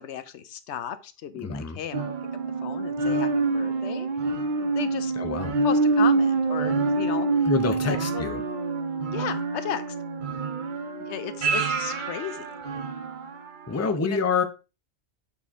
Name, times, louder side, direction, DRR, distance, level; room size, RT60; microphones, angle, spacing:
voice 1, 0.0-2.1 2.6-5.1 5.6-8.3 9.1-9.8 11.0-12.5 13.7-14.3, left 9 dB, 85° left, 0.9 m, -35 dB
voice 2, 1.4-1.8 5.2-5.6 7.5-8.4 13.7-14.4, left 4 dB, 20° left, 0.6 m, -27 dB
sound 1, 1.9-13.4 13.8-13.9, right 3 dB, 50° right, 0.8 m, -26 dB
7.3 x 4.2 x 3.5 m
omnidirectional pair, 1.1 m